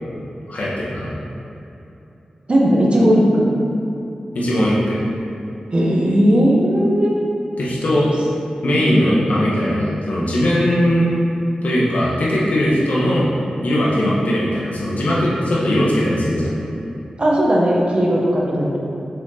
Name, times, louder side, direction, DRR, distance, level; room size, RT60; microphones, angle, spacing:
voice 1, 0.5-1.1 4.3-5.0 7.6-8.1 8.6-11.1 11.6-13.3 13.6-16.5, equal, 75° left, -6 dB, 1.7 m, -19 dB
voice 2, 2.5-3.5 5.7-7.2 8.7-9.0 13.9-14.1 17.2-18.8, equal, 45° right, -4 dB, 1.5 m, -17 dB
6.3 x 6.3 x 4.3 m, 2.9 s
wide cardioid pair, 85°, 3 cm